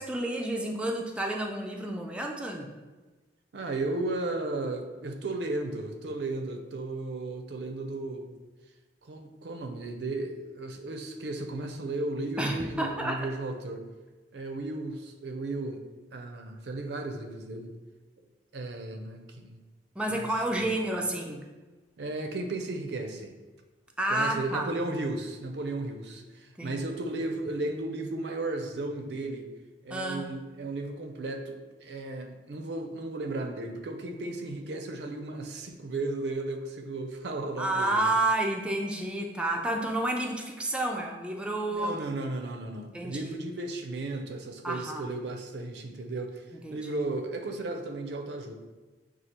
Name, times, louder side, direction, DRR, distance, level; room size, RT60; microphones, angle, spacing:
voice 1, 0.0-2.7 12.4-13.3 20.0-21.4 24.0-24.7 26.6-26.8 29.9-30.3 37.6-42.0 42.9-43.3 44.6-45.1 46.6-46.9, right 1 dB, 5° right, 1 dB, 0.3 m, -30 dB
voice 2, 3.5-8.3 9.0-13.9 14.3-15.8 16.1-17.7 18.5-19.6 20.1-20.3 22.0-23.3 24.1-29.5 29.8-38.1 41.7-48.5, right 2 dB, 70° right, 5 dB, 0.5 m, -35 dB
6.3 x 2.4 x 2.9 m, 1.2 s
head